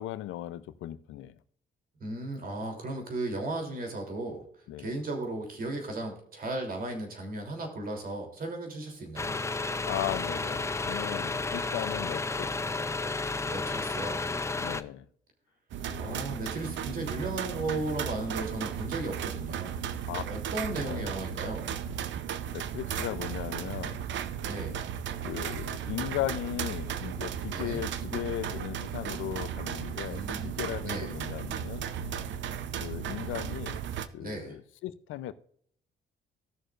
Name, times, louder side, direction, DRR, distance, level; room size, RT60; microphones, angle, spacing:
voice 1, 0.0-1.4 4.7-4.9 9.8-12.7 14.5-15.1 15.9-16.3 20.1-20.2 20.7-21.1 22.5-24.0 25.2-31.9 32.8-33.8 34.1-35.3, left 13 dB, 85° left, 0.6 m, -37 dB
voice 2, 2.0-4.4 4.8-9.3 13.4-14.2 16.0-20.0 20.3-21.7 24.4-24.8 27.5-27.8 30.0-31.1 33.2-33.3 34.2-34.6, right 2 dB, 45° right, 3.2 m, -36 dB
sound 1, 9.2-14.8, left 3 dB, 15° left, 0.5 m, -32 dB
sound 2, 15.7-34.1, right 9 dB, 70° right, 0.8 m, -35 dB
17.0 x 6.5 x 2.5 m
cardioid pair, 90°, 20 cm